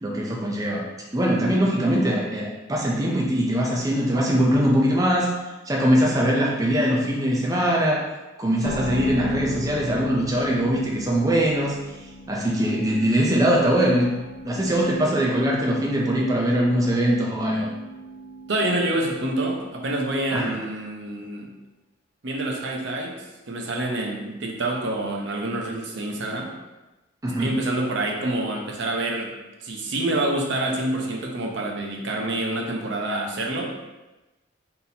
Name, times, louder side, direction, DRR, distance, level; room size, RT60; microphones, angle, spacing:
voice 1, 0.0-5.3 5.7-8.0 8.4-11.8 12.3-14.1 14.4-17.7 20.3-20.5 27.2-27.5, equal, 15° right, -3 dB, 0.5 m, -22 dB
sound 1, 8.6-20.9, right 1 dB, 55° left, 0.6 m, -38 dB
voice 2, 18.5-21.5 22.2-23.2 23.5-26.5 27.4-29.3 29.6-33.7, right 1 dB, 65° right, 0 dB, 0.7 m, -27 dB
4.1 x 3.7 x 2.8 m, 1.1 s
head